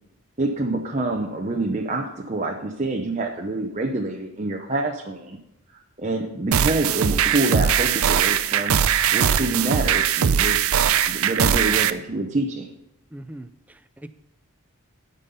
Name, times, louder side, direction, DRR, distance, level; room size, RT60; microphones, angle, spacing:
voice 1, 0.4-5.4 5.7-8.8 9.1-10.6 10.8-12.7, right 2 dB, 35° right, 0 dB, 0.7 m, -26 dB
sound 1, 6.5-11.9, right 8 dB, 75° right, 0.5 m, -20 dB
voice 2, 13.1-14.1, right 1 dB, 5° right, 12 dB, 0.3 m, -41 dB
12.5 x 5.4 x 5.5 m, 0.87 s
head